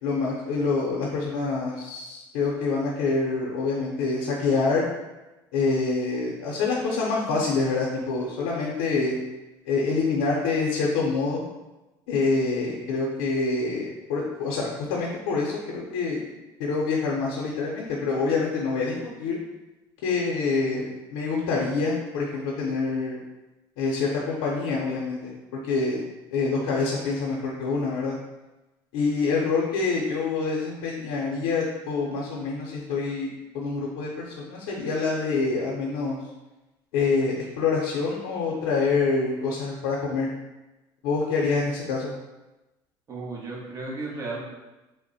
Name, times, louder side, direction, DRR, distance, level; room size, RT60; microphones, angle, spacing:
voice 1, 0.0-4.9 5.5-9.2 9.7-11.5 12.1-16.2 16.6-19.4 20.0-23.2 23.8-26.0 26.3-28.2 28.9-36.2 36.9-40.3 41.0-42.1, left 4 dB, 85° left, -3 dB, 0.6 m, -26 dB
voice 2, 43.1-44.4, right 3 dB, 35° right, -4 dB, 1.0 m, -34 dB
3.3 x 2.1 x 4.0 m, 1.0 s
supercardioid pair, 105°, 9 cm